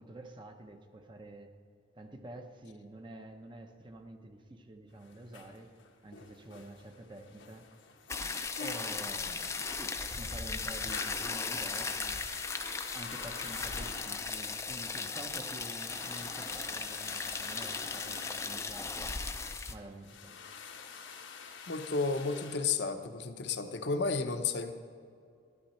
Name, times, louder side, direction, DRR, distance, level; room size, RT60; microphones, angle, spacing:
voice 1, 0.0-1.5 1.9-5.7 6.0-7.7 8.6-12.2 12.9-19.1 19.7-20.4, right 1 dB, 25° right, 5 dB, 0.7 m, -48 dB
sound 1, 4.9-22.6, left 5 dB, 85° left, 1.1 m, -49 dB
sound 2, 8.1-19.7, left 4 dB, 15° left, 0.5 m, -37 dB
voice 2, 21.7-24.7, left 4 dB, 60° left, 7 dB, 0.8 m, -32 dB
12.0 x 12.0 x 4.3 m, 2.3 s
head